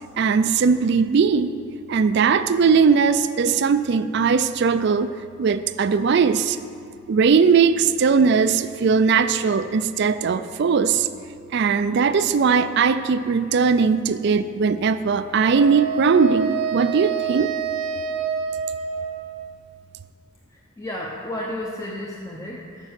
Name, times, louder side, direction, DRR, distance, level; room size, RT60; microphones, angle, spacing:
voice 1, 0.2-1.5 1.9-5.1 5.4-6.6 7.1-11.1 11.5-17.5, right 5 dB, 55° right, 12 dB, 0.3 m, -19 dB
Wind instrument woodwind instrument, 15.5-19.6, right 6 dB, 80° right, 0.8 m, -27 dB
voice 2, 20.5-22.9, left 1 dB, 15° left, -2 dB, 0.6 m, -33 dB
9.2 x 5.3 x 6.5 m, 2.3 s
head